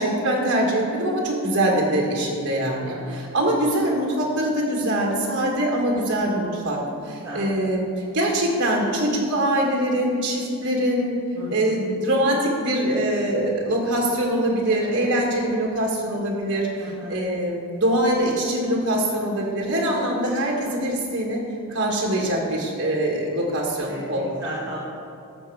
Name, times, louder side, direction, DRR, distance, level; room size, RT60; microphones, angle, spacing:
voice 1, 0.0-11.2 11.5-21.4 21.7-24.4, right 1 dB, 55° right, -1 dB, 1.6 m, -23 dB
voice 2, 2.8-3.2 7.0-7.4 11.4-11.7 14.8-15.2 16.8-17.1 23.9-24.8, equal, 15° right, -11 dB, 2.1 m, -36 dB
14.0 x 6.7 x 4.8 m, 2.4 s
head